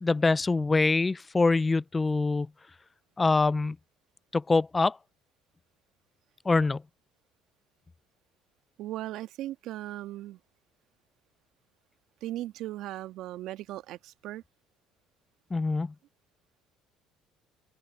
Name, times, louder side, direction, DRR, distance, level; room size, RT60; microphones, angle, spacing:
voice 1, 0.0-2.5 3.2-3.8 4.3-5.0 6.5-6.8 15.5-15.9, left 3 dB, 25° left, 0.3 m, -24 dB
voice 2, 8.8-10.4 12.2-14.4, right 14 dB, 65° right, 1.5 m, -37 dB
open air
hypercardioid pair, 60°, 0 cm